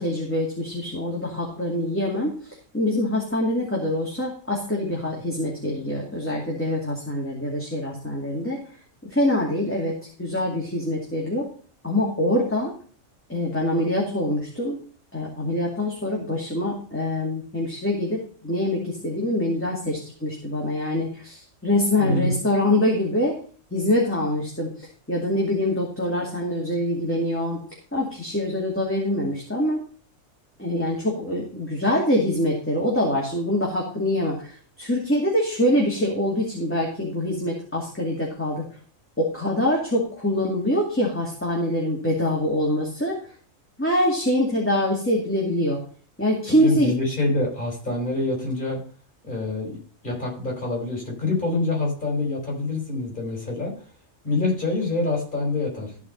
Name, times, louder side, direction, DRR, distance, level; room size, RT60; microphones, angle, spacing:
voice 1, 0.0-2.3 2.7-8.6 9.1-11.4 11.8-12.7 13.3-14.8 15.1-23.4 23.7-27.6 27.9-29.8 30.6-38.6 39.2-43.2 43.8-45.8 46.2-46.9, left 1 dB, 10° left, -3 dB, 2.4 m, -24 dB
voice 2, 22.0-22.3 46.5-48.8 49.2-49.8 50.0-53.8 54.2-55.9, left 2 dB, 40° left, -1 dB, 5.4 m, -26 dB
14.5 x 5.0 x 5.4 m, 0.43 s
omnidirectional pair, 1.3 m